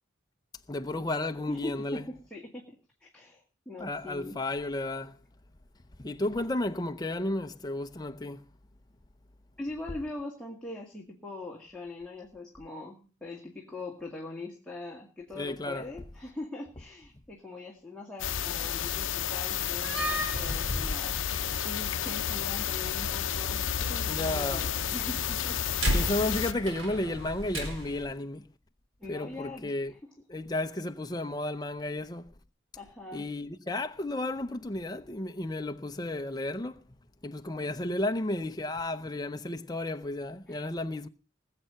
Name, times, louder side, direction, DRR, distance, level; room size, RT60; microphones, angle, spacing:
voice 1, 0.7-2.0 3.8-5.2 6.0-8.4 15.4-15.9 20.5-20.9 24.0-24.7 25.9-28.5 29.1-29.9 30.3-32.3 33.1-36.8 37.2-41.1, left 2 dB, 20° left, 0.7 m, -33 dB
voice 2, 1.5-2.6 3.0-4.4 9.6-26.0 29.0-30.0 32.8-33.3 40.5-40.7, left 2 dB, 5° left, 2.1 m, -42 dB
sound 1, 18.2-26.5, left 9 dB, 70° left, 0.7 m, -31 dB
Slam, 19.7-28.1, equal, 85° right, 4.4 m, -36 dB
20.0 x 7.7 x 5.6 m
head